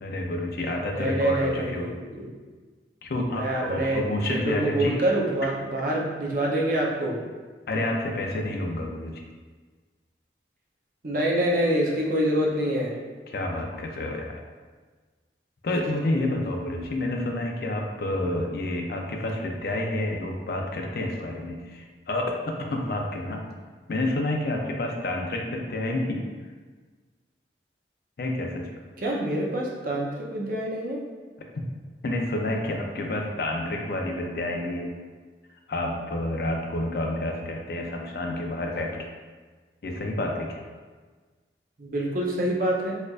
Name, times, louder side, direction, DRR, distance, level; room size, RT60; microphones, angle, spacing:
voice 1, 0.0-2.0 3.0-5.0 7.7-9.2 13.3-14.4 15.6-23.4 23.9-26.2 28.2-28.7 31.5-31.7 32.0-34.9 35.7-39.0 39.8-40.6, left 1 dB, 60° left, 2 dB, 0.4 m, -29 dB
voice 2, 0.9-2.3 3.3-7.2 11.0-13.0 29.0-31.0 41.8-43.0, right 1 dB, 50° right, -3 dB, 0.6 m, -26 dB
4.2 x 2.5 x 2.3 m, 1.4 s
head